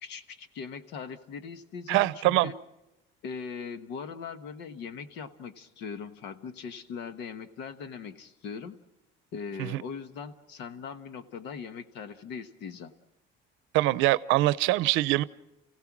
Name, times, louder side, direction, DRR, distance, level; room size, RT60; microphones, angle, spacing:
voice 1, 0.0-2.5 3.2-8.8 9.3-12.9, left 6 dB, 60° left, 11 dB, 1.2 m, -40 dB
voice 2, 1.9-2.5 9.6-9.8 13.7-15.2, right 18 dB, 80° right, 17 dB, 0.7 m, -24 dB
29.5 x 16.5 x 6.1 m, 0.93 s
cardioid pair, 180°, 20 cm